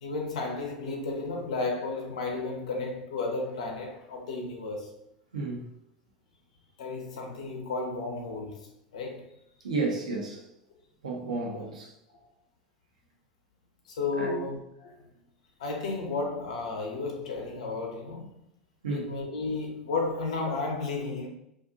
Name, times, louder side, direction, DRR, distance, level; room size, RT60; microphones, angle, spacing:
voice 1, 0.0-5.0 6.8-8.6 8.9-9.3 11.5-11.6 13.9-14.6 14.8-14.9 15.6-18.3 18.9-21.3, left 3 dB, 75° left, 0.6 m, -33 dB
voice 2, 5.3-5.7 9.6-10.5 11.0-11.9 14.1-14.4 18.8-19.1, right 3 dB, 80° right, 0.7 m, -32 dB
2.5 x 2.4 x 2.5 m
figure-of-eight pair, 80°, 4 cm